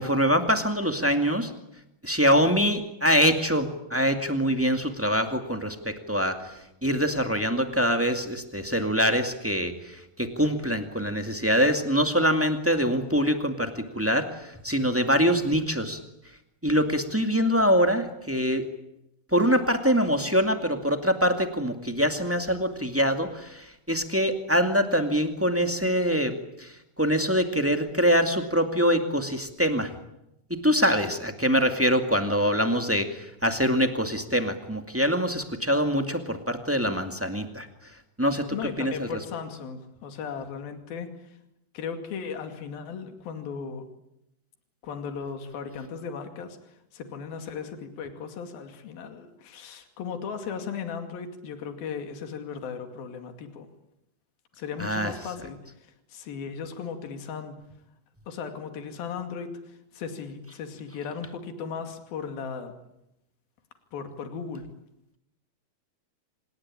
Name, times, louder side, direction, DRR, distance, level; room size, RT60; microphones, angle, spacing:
voice 1, 0.0-1.5 2.0-16.0 16.6-18.6 19.3-29.9 30.5-37.7 38.2-39.1 54.8-55.1, equal, 5° right, 6 dB, 1.2 m, -24 dB
voice 2, 38.5-41.4 41.7-43.9 44.8-53.7 54.5-57.6 58.3-62.7 63.9-64.7, left 6 dB, 75° left, 7 dB, 4.2 m, -37 dB
26.5 x 20.5 x 9.9 m, 0.84 s
omnidirectional pair, 4.3 m